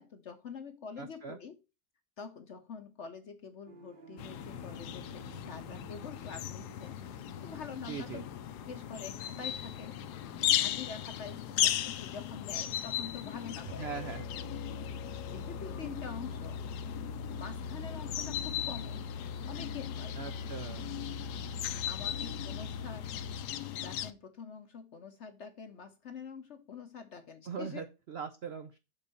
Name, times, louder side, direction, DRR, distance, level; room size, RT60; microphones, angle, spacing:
voice 1, 0.0-1.6 2.2-8.2 8.7-10.0 10.6-14.0 15.3-16.6 17.4-19.1 19.5-20.2 20.7-20.8 21.9-23.1 23.7-27.8, left 6 dB, 55° left, 0.9 m, -46 dB
voice 2, 1.0-1.4 7.9-8.2 13.8-14.3 20.2-20.9 27.5-28.8, right 6 dB, 75° right, 0.5 m, -41 dB
sound 1, 3.7-13.8, right 6 dB, 40° right, 0.8 m, -54 dB
sound 2, 4.2-24.1, left 12 dB, 70° left, 1.1 m, -37 dB
Musical instrument, 13.6-23.5, left 3 dB, 85° left, 2.3 m, -42 dB
7.2 x 4.0 x 6.6 m
omnidirectional pair, 1.9 m